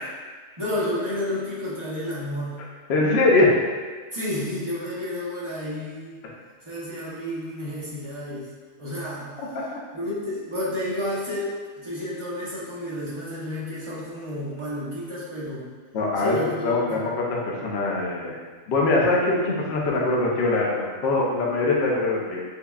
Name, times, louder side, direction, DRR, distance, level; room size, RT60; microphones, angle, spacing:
voice 1, 0.6-2.6 4.1-6.2 6.7-8.5 8.8-9.3 9.9-15.7 16.2-17.0, left 1 dB, 30° right, -8 dB, 0.5 m, -31 dB
voice 2, 2.9-3.5 9.4-9.6 15.9-18.3 18.7-22.4, left 2 dB, 60° left, -3 dB, 0.8 m, -22 dB
5.4 x 2.2 x 2.3 m, 1.5 s
omnidirectional pair, 1.4 m